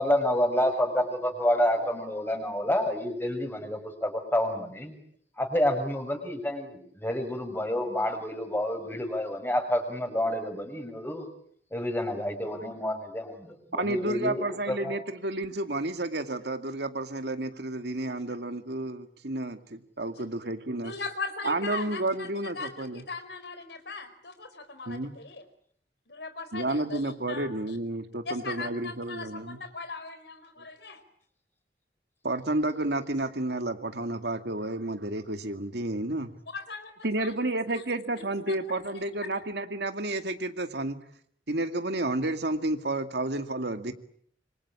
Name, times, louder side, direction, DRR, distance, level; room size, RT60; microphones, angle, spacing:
voice 1, 0.0-4.9 5.4-11.3 11.7-15.0, left 1 dB, 10° left, 6 dB, 6.2 m, -29 dB
voice 2, 13.8-20.9 21.4-23.0 24.9-25.1 26.5-29.6 32.2-36.3 37.0-41.0 41.5-43.9, right 2 dB, 65° right, 7 dB, 2.2 m, -31 dB
voice 3, 20.8-25.4 26.1-27.5 28.2-31.0 36.5-37.3 37.7-37.8 38.4-38.6, left 4 dB, 70° left, 10 dB, 4.5 m, -39 dB
26.5 x 25.5 x 8.8 m, 0.66 s
head